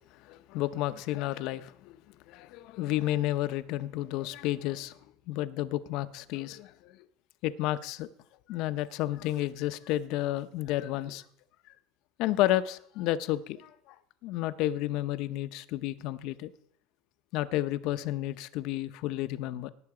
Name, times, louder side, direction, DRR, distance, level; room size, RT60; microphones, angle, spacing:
voice 1, 0.2-5.0 5.3-7.0 7.4-8.1 8.5-11.2 12.2-14.0 14.2-16.5 17.3-19.7, left 14 dB, 65° left, 0.7 m, -31 dB
18.0 x 6.7 x 4.9 m
supercardioid pair, 105°, 0 cm